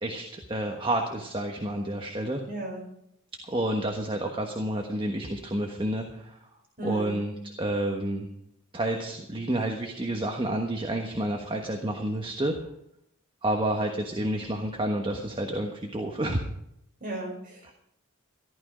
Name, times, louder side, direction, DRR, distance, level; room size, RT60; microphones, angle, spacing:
voice 1, 0.0-2.4 3.5-6.4 6.8-8.3 8.7-12.6 13.4-16.4 17.6-17.7, right 1 dB, 25° right, 2 dB, 1.3 m, -29 dB
voice 2, 2.5-2.8 6.8-7.2 17.0-17.7, right 2 dB, 40° right, -1 dB, 5.3 m, -34 dB
14.5 x 12.0 x 5.1 m, 0.75 s
head